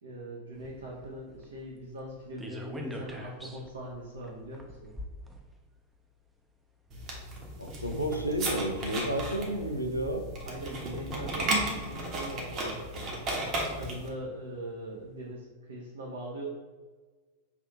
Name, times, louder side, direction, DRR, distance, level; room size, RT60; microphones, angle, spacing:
voice 1, 0.0-4.9 10.4-13.1 13.7-16.5, right 1 dB, 70° right, -5 dB, 0.7 m, -41 dB
sound 1, 0.5-6.0 6.9-8.4 9.2-9.3 10.3-10.4 10.7-11.9 12.9-14.0 14.4-14.5 14.8-14.9, equal, 10° right, 0.5 m, -45 dB
sound 2, 6.9-14.1, right 1 dB, 35° right, 0.9 m, -34 dB
voice 2, 7.6-10.2, right 1 dB, 90° left, 3 dB, 0.5 m, -31 dB
5.8 x 2.6 x 2.2 m, 1.4 s
figure-of-eight pair, 90°, 0 cm